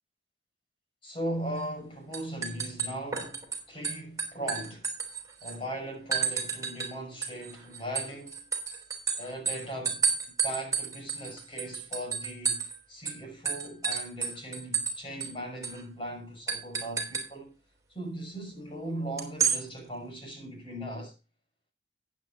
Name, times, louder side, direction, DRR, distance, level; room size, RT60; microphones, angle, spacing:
voice 1, 1.0-4.9 5.4-8.4 9.2-17.5 17.9-21.1, right 1 dB, 30° left, 5.8 m, -38 dB
sound 1, 1.6-1.8 2.1-3.6 3.8-5.6 6.1-6.9 7.2-12.8 13.1-13.2 13.5-14.9 15.2-15.3 15.6-15.8 16.5-17.3 19.2-19.6, right 6 dB, 20° right, 3.3 m, -30 dB
14.5 x 9.9 x 2.6 m
head